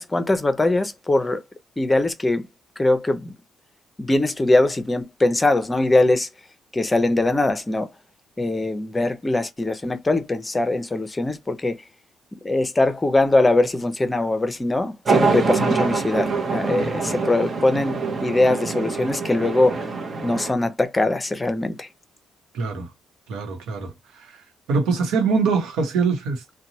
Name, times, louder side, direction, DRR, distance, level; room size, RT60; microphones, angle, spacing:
voice 1, 0.0-1.4 1.8-2.5 2.8-3.3 4.0-6.3 6.7-7.9 8.4-11.8 12.4-19.8 20.2-21.9, left 2 dB, 20° left, 0.6 m, -21 dB
sound 1, 15.1-20.5, right 4 dB, 45° right, 0.8 m, -24 dB
voice 2, 22.5-22.9 23.3-24.4 24.7-26.5, right 5 dB, 90° right, 0.9 m, -23 dB
2.8 x 2.2 x 2.7 m
cardioid pair, 90°, 0 cm